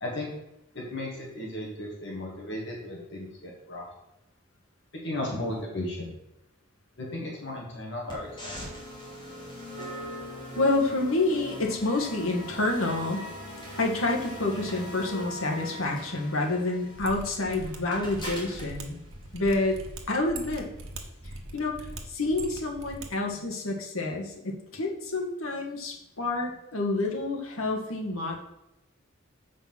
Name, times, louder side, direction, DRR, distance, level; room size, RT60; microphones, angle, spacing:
voice 1, 0.0-0.3 0.7-3.8 5.0-6.1 7.0-8.7, left 1 dB, 55° left, -2 dB, 2.4 m, -35 dB
sound 1, 8.1-20.1, left 1 dB, 20° left, 2.5 m, -41 dB
voice 2, 10.6-13.3 13.8-19.0 19.3-19.8 20.1-20.7 21.5-21.8 22.1-28.4, left 2 dB, 80° left, 1 dB, 1.6 m, -28 dB
Mechanisms, 16.9-23.1 23.3-23.4, right 2 dB, 70° right, 1.4 m, -42 dB
7.4 x 5.1 x 5.9 m, 0.87 s
head